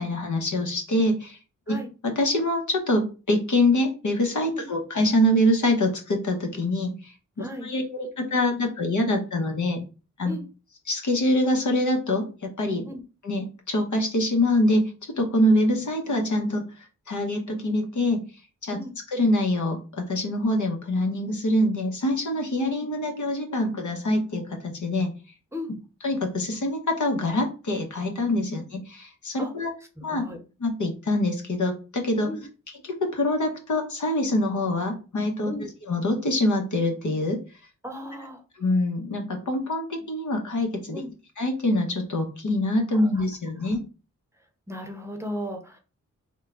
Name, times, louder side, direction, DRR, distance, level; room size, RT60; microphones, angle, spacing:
voice 1, 0.0-1.4 1.7-1.8 2.0-7.1 7.6-9.8 10.2-10.4 10.9-12.9 13.2-16.6 17.1-18.2 18.6-18.8 19.1-25.1 26.0-29.7 30.0-30.2 30.6-32.3 32.8-35.5 35.9-37.4 38.6-41.0 41.4-43.8, left 1 dB, 60° left, 3 dB, 1.1 m, -25 dB
voice 2, 7.4-7.7 10.2-10.4 12.8-13.0 18.7-18.9 25.5-25.7 29.4-29.5 30.1-30.4 32.2-32.4 35.4-35.7 37.8-38.4 40.9-41.1 42.9-43.2 43.6-43.7 44.7-45.8, left 1 dB, 10° right, 3 dB, 0.8 m, -36 dB
3.6 x 2.3 x 3.7 m, 0.33 s
cardioid pair, 65°, 33 cm